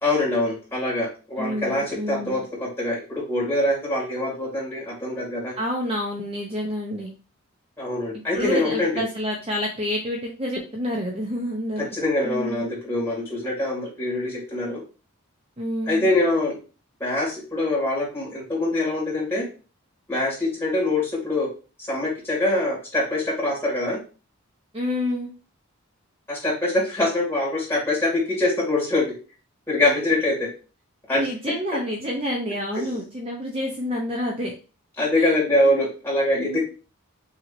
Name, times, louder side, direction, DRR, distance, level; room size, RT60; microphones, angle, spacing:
voice 1, 0.0-5.5 7.8-9.0 11.8-14.8 15.9-16.6 17.0-19.4 20.1-21.5 21.9-24.0 26.3-29.1 29.7-30.5 31.1-31.3 31.7-31.8 35.0-36.6, left 2 dB, 10° left, -6 dB, 2.1 m, -24 dB
voice 2, 1.4-2.4 5.6-7.1 8.3-11.9 12.2-12.6 15.6-16.1 24.7-25.3 31.1-34.5 35.2-35.4 36.3-36.6, left 1 dB, 25° right, -1 dB, 0.6 m, -28 dB
5.8 x 2.8 x 2.5 m, 0.34 s
head